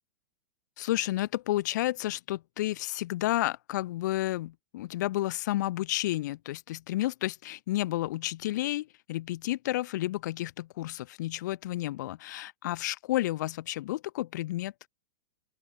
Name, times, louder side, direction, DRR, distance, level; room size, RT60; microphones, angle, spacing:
voice 1, 0.8-14.9, left 16 dB, 45° left, 2.6 m, -31 dB
open air
supercardioid pair, 180°, 13 cm